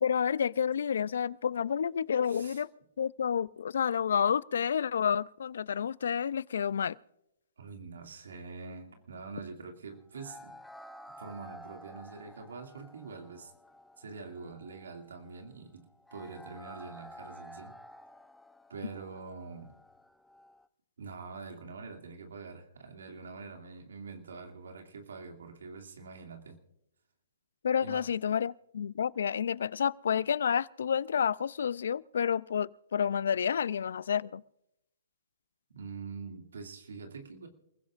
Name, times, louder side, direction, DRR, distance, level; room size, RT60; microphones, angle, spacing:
voice 1, 0.0-2.7 3.0-7.0 27.6-34.4, left 7 dB, 70° left, 0.4 m, -30 dB
voice 2, 2.2-2.6 7.6-10.6 11.1-13.5 14.0-17.8 18.7-19.8 21.0-26.6 27.8-28.1 35.7-37.5, right 4 dB, 80° right, 2.3 m, -45 dB
sound 1, 10.1-20.7, equal, 5° left, 0.7 m, -52 dB
28.5 x 16.0 x 2.5 m
hypercardioid pair, 135°, 0 cm